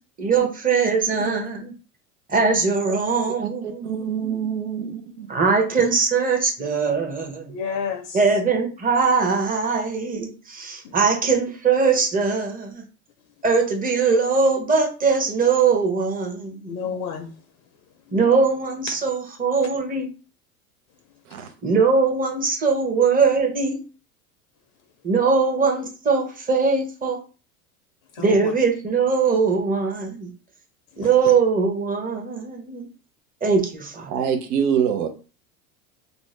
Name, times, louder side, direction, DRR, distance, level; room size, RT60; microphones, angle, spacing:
voice 1, 0.2-1.7 2.3-4.4 5.3-7.6 8.1-12.8 13.4-17.0 18.1-20.1 21.6-23.8 25.0-27.2 28.2-30.3 31.0-32.9 33.4-34.1, right 5 dB, 20° right, 0.8 m, -21 dB
voice 2, 3.4-5.3 21.3-21.5 34.1-35.1, right 8 dB, 85° right, 0.8 m, -25 dB
voice 3, 7.5-8.2 10.8-10.9 16.7-17.3 28.2-28.5, left 6 dB, 60° left, 0.6 m, -30 dB
2.6 x 2.1 x 3.2 m
hypercardioid pair, 95°, 44 cm